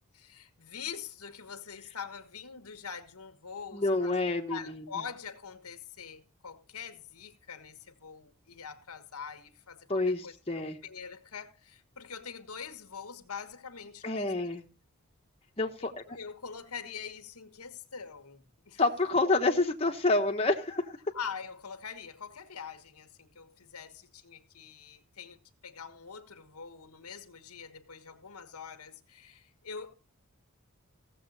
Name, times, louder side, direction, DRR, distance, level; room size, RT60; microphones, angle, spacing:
voice 1, 0.1-4.2 4.5-14.5 15.8-18.8 21.1-30.0, left 6 dB, 85° left, 1.5 m, -44 dB
voice 2, 3.7-4.8 9.9-10.8 14.0-14.6 15.6-15.9 18.8-21.0, left 2 dB, 25° left, 1.2 m, -28 dB
16.0 x 7.7 x 4.1 m
head